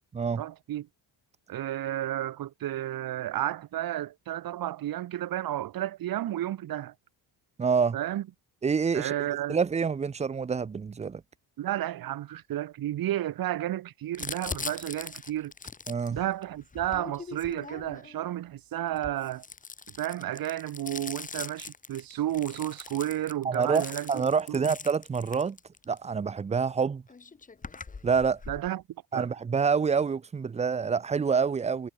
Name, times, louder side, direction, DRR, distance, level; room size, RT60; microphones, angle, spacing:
voice 1, 0.4-0.9 1.5-6.9 7.9-8.2 8.9-9.6 11.6-15.5 16.1-19.5 20.0-24.2 24.5-24.7 28.5-28.8 29.1-29.3, right 13 dB, 50° right, 4.1 m, -32 dB
voice 2, 7.6-8.0 8.6-9.1 9.5-11.2 15.9-16.2 23.4-25.6 25.9-27.0 28.0-28.4 29.1-31.9, right 6 dB, 15° right, 0.6 m, -27 dB
Crumpling crinkling, 14.1-18.2 18.9-26.0 26.8-26.9 27.1-28.7, left 4 dB, 15° left, 5.8 m, -41 dB
cardioid pair, 180°, 45 cm